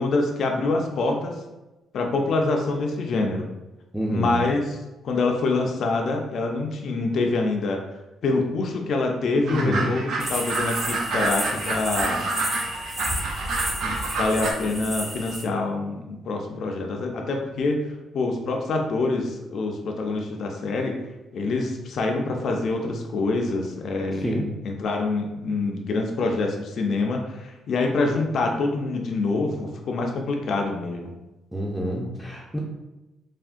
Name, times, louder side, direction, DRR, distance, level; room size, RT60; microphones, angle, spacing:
voice 1, 0.0-1.3 1.9-3.5 4.1-4.8 5.0-7.8 8.2-12.2 13.8-17.8 18.1-20.9 21.3-24.4 24.6-31.1, left 3 dB, 60° left, 2 dB, 0.4 m, -25 dB
voice 2, 3.9-4.3 9.5-9.9 24.2-24.6 31.5-32.6, right 1 dB, ahead, -4 dB, 0.4 m, -27 dB
sound 1, 9.5-14.5, right 3 dB, 75° right, 0.6 m, -28 dB
sound 2, 10.2-15.4, right 1 dB, 25° right, 0.8 m, -31 dB
3.4 x 2.1 x 2.5 m, 1.0 s
cardioid pair, 90°, 0 cm